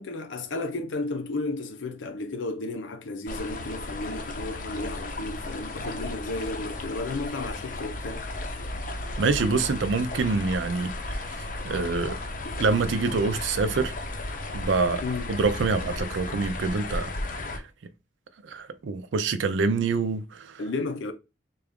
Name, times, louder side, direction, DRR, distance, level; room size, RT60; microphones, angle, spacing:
voice 1, 0.0-8.3 15.0-15.3 20.6-21.1, left 2 dB, 85° left, 0.6 m, -33 dB
sound 1, 3.3-17.6, left 2 dB, 45° left, 0.6 m, -34 dB
voice 2, 9.2-11.2 11.6-12.2 12.6-13.9 14.5-15.0 15.3-17.1 18.4-20.6, right 4 dB, 80° right, 0.5 m, -26 dB
3.8 x 2.4 x 3.5 m
head